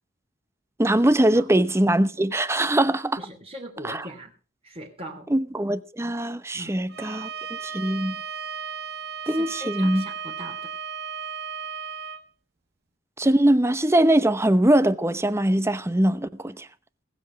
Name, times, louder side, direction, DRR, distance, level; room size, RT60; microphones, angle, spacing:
voice 1, 0.8-3.2 3.8-4.1 5.3-7.3 7.6-8.2 9.3-10.1 13.2-16.7, right 1 dB, 15° right, 0.8 m, -22 dB
voice 2, 3.2-4.3 4.6-5.3 6.5-6.8 9.2-10.7, right 1 dB, 30° right, 3.1 m, -40 dB
Bowed string instrument, 6.9-12.2, right 6 dB, 60° right, 1.1 m, -35 dB
19.5 x 7.7 x 5.9 m
head